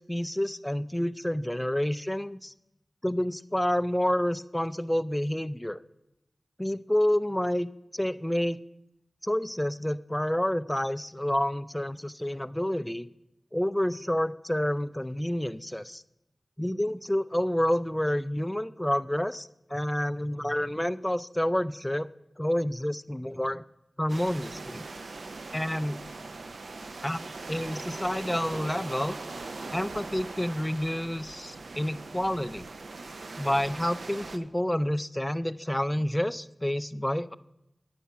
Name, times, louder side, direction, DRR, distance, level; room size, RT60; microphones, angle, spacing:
voice 1, 0.0-2.5 3.0-5.8 6.6-8.6 9.2-13.1 13.5-16.0 16.6-22.1 22.4-23.6 24.0-24.8 25.5-26.0 27.0-29.2 29.7-32.7 33.4-37.4, left 1 dB, 10° left, 16 dB, 0.3 m, -29 dB
sound 1, 24.1-34.4, right 3 dB, 85° right, 0.5 m, -41 dB
9.4 x 5.5 x 7.0 m, 0.87 s
wide cardioid pair, 45°, 0 cm